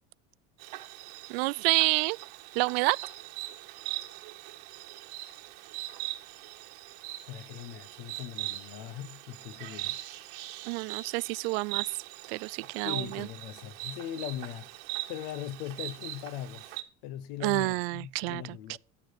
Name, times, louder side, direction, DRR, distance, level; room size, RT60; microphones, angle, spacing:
Insect, 0.6-16.8, right 17 dB, 70° right, 1.5 m, -40 dB
voice 1, 1.3-2.2 2.6-3.0 10.7-11.8 12.3-13.3 17.4-18.8, right 26 dB, 90° right, 0.4 m, -29 dB
voice 2, 7.3-10.0 10.7-10.8 12.6-14.7 15.1-16.7 17.0-18.8, left 11 dB, 60° left, 1.3 m, -40 dB
12.5 x 8.7 x 4.9 m
cardioid pair, 180°, 29 cm